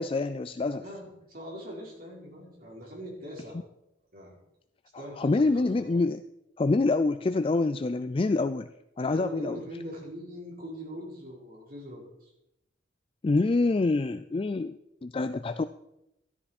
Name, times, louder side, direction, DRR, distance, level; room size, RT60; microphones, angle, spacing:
voice 1, 0.0-0.8 4.9-6.2 6.6-8.7 9.0-9.6 13.2-15.6, left 3 dB, 30° left, 11 dB, 0.4 m, -26 dB
voice 2, 0.8-3.6 4.1-4.4 5.0-6.0 9.1-12.3, equal, 50° right, -3 dB, 4.3 m, -42 dB
13.5 x 13.0 x 4.3 m, 0.85 s
head